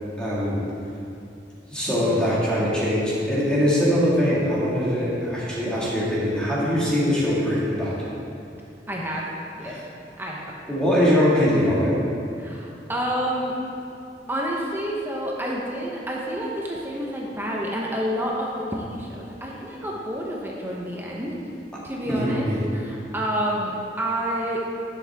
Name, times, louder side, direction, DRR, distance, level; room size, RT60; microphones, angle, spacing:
voice 1, 0.2-0.6 1.7-8.1 10.7-12.0 21.7-21.8 22.1-22.6, equal, 5° left, -8 dB, 2.0 m, -22 dB
voice 2, 1.9-2.2 8.9-9.2 9.6-9.8 10.2-10.6 12.4-13.5 14.3-21.4 21.8-22.5 22.7-24.6, equal, 10° right, -3 dB, 0.9 m, -29 dB
11.0 x 7.3 x 3.6 m, 2.7 s
head